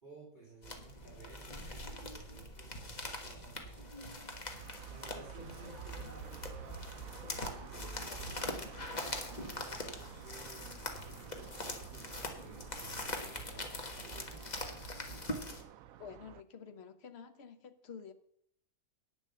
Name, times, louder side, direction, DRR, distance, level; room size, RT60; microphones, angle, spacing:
voice 1, 0.0-3.9 4.9-6.7 7.3-14.8, right 3 dB, 30° right, -6 dB, 4.0 m, -56 dB
sound 1, 0.6-15.6, left 1 dB, 30° left, 1.4 m, -43 dB
sound 2, 4.5-16.4, right 9 dB, 75° right, 1.0 m, -52 dB
voice 2, 8.1-8.7 16.0-18.1, left 7 dB, 50° left, 9 dB, 1.1 m, -50 dB
9.9 x 7.3 x 6.7 m, 0.67 s
omnidirectional pair, 1.6 m